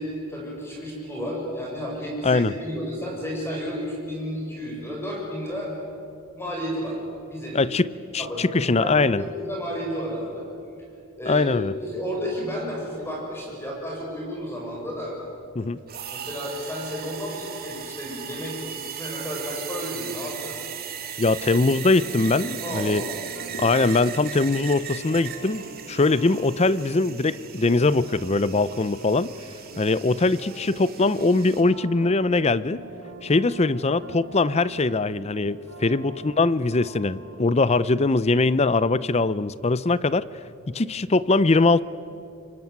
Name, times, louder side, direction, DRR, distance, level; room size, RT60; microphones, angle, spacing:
voice 1, 0.0-5.7 6.3-7.0 7.3-7.8 8.2-10.4 11.2-15.1 16.1-20.6 22.6-23.0 35.9-36.0, equal, 10° left, -2 dB, 6.4 m, -32 dB
voice 2, 7.5-7.9 8.1-9.2 11.3-11.7 15.6-15.8 21.2-23.0 23.6-29.3 29.8-32.8 33.2-40.3 40.7-41.8, left 3 dB, 30° left, 17 dB, 0.5 m, -22 dB
sound 1, 15.9-31.6, right 9 dB, 40° right, 2.7 m, -38 dB
sound 2, 21.5-27.9 28.3-28.4, left 1 dB, 85° left, 7.6 m, -45 dB
sound 3, 21.7-37.9, right 4 dB, 85° right, 4.1 m, -44 dB
26.0 x 23.5 x 9.3 m, 2.6 s
head